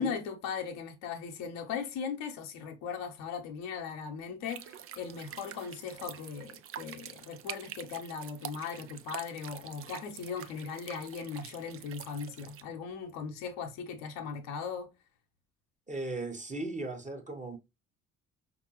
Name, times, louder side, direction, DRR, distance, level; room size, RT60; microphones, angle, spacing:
voice 1, 0.0-14.9, left 6 dB, 60° left, 0.9 m, -38 dB
sound 1, 4.4-12.6, right 10 dB, 35° right, 0.5 m, -46 dB
voice 2, 15.9-17.6, right 2 dB, 20° right, 1.1 m, -37 dB
5.2 x 2.6 x 3.1 m
figure-of-eight pair, 45°, 37 cm